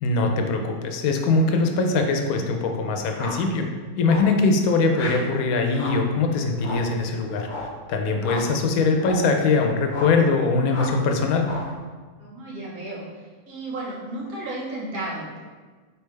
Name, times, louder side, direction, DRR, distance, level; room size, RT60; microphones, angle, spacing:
voice 1, 0.0-3.7 4.0-7.5 7.9-11.5, left 3 dB, 80° left, 4 dB, 1.0 m, -22 dB
sound 1, 3.1-3.5 4.0-4.4 4.9-5.3 5.7-6.1 6.6-7.0 7.4-7.8 8.2-8.6 9.0-9.3 9.9-10.2 10.7-11.0 11.4-11.8, left 2 dB, 50° left, 0.6 m, -34 dB
voice 2, 12.2-15.4, right 2 dB, 75° right, -4 dB, 1.5 m, -34 dB
4.5 x 3.4 x 3.2 m, 1.4 s
omnidirectional pair, 1.5 m